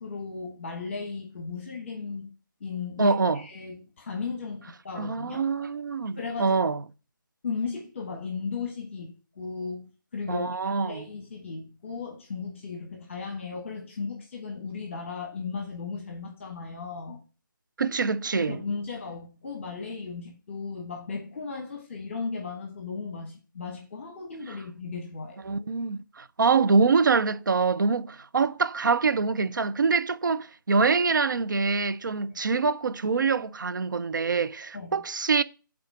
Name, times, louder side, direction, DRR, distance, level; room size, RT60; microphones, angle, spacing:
voice 1, 0.0-2.3 2.6-5.5 6.1-6.6 7.4-17.2 18.3-25.4 32.3-32.4 34.7-35.0, left 5 dB, 35° left, 1.3 m, -36 dB
voice 2, 3.0-3.4 5.0-6.8 10.3-11.0 17.8-18.6 25.5-35.4, right 4 dB, 65° right, 0.4 m, -25 dB
5.7 x 3.8 x 4.7 m
figure-of-eight pair, 155°, 11 cm